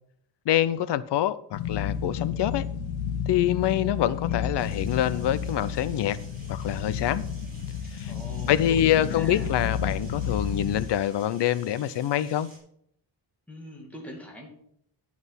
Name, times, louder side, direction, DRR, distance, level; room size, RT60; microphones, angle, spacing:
voice 1, 0.5-2.7 3.3-6.2 6.5-7.3 7.9-8.1 8.5-12.5, left 11 dB, 65° left, 0.7 m, -25 dB
sound 1, 1.5-10.9, left 7 dB, 85° left, 1.9 m, -31 dB
sound 2, 4.6-12.6, right 1 dB, 20° right, 5.1 m, -53 dB
voice 2, 8.0-9.5 13.5-14.5, equal, 5° left, 2.4 m, -42 dB
11.5 x 6.0 x 5.7 m
wide cardioid pair, 170°, 44 cm